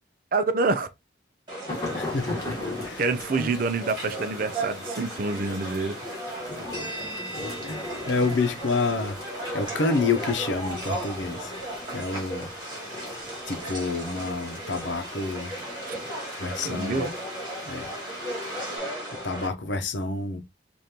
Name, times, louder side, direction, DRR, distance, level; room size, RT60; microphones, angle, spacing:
voice 1, 0.3-0.9 3.0-6.0 15.9-16.0 16.6-17.1, right 3 dB, 45° right, 0.5 m, -27 dB
sound 1, 1.5-19.5, right 1 dB, 25° right, 1.8 m, -35 dB
sound 2, 1.7-18.8, left 2 dB, 20° left, 1.7 m, -40 dB
voice 2, 1.9-2.3 2.8-3.0 3.4-3.5 7.6-7.8 8.1-9.2 9.5-11.5 11.9-12.5 12.9-13.0 13.5-15.5 16.4-17.1 17.6-17.9 19.2-20.4, left 3 dB, 75° left, 0.8 m, -28 dB
5.1 x 2.6 x 2.9 m
head